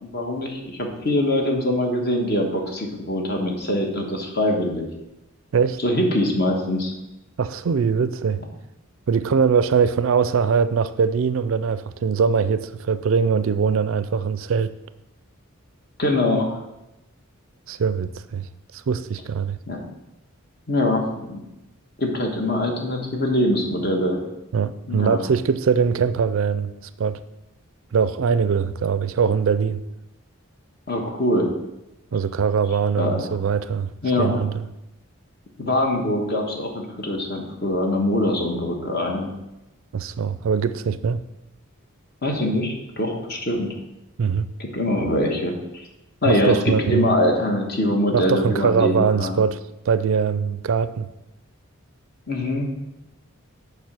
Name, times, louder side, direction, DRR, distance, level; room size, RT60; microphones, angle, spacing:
voice 1, 0.0-4.9 5.8-6.9 16.0-16.6 19.7-19.8 20.7-21.4 22.0-24.2 24.9-25.2 30.9-31.5 33.0-33.3 34.0-34.4 35.6-39.3 42.2-43.7 44.6-45.8 46.2-49.4 52.3-52.7, left 1 dB, 45° left, 1 dB, 1.4 m, -23 dB
voice 2, 7.4-8.4 9.1-14.7 17.7-18.5 18.7-19.6 24.5-26.7 27.0-27.2 27.9-29.8 32.1-33.9 34.2-34.7 39.9-41.2 44.2-44.5 46.3-47.1 48.1-49.6 49.9-51.1, right 6 dB, 65° right, 14 dB, 0.4 m, -22 dB
7.2 x 4.8 x 6.2 m, 0.93 s
head